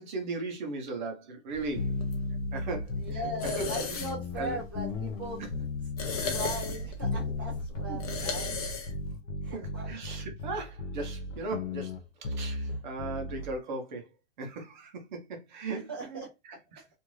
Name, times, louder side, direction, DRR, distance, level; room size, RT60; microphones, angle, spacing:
voice 1, 0.0-1.9 2.5-3.7 4.4-4.6 6.2-6.4 7.9-8.3 9.5-11.9 12.2-14.1 14.4-16.8, right 3 dB, 40° right, 0.8 m, -38 dB
sound 1, 1.5-9.1, left 5 dB, 30° left, 0.5 m, -38 dB
sound 2, 1.8-13.6, left 2 dB, 90° left, 1.0 m, -35 dB
voice 2, 3.0-5.4 6.0-8.5 9.4-9.9 15.9-16.3, right 2 dB, 20° right, 0.3 m, -39 dB
2.6 x 2.4 x 3.1 m
supercardioid pair, 175°, 37 cm